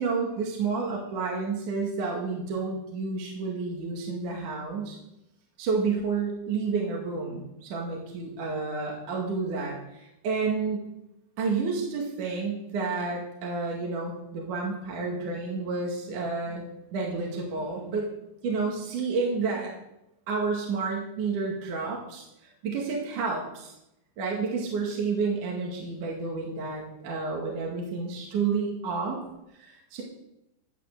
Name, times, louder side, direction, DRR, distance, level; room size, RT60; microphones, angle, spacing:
voice 1, 0.0-5.0 5.6-10.8 11.4-16.6 16.9-18.1 18.4-19.7 20.3-23.7 24.2-29.2 29.6-30.0, right 4 dB, 55° right, -1 dB, 3.2 m, -30 dB
12.0 x 7.4 x 7.5 m, 0.85 s
omnidirectional pair, 4.5 m